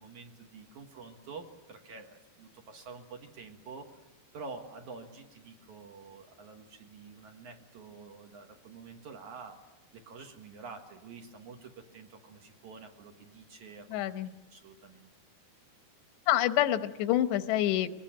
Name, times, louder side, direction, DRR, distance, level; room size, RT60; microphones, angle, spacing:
voice 1, 0.0-4.1 4.3-9.6 9.9-15.1, right 4 dB, 55° right, 3 dB, 2.7 m, -48 dB
voice 2, 13.9-14.3 16.3-17.9, left 13 dB, 85° left, 11 dB, 3.2 m, -27 dB
24.5 x 19.0 x 9.2 m, 1.1 s
omnidirectional pair, 4.9 m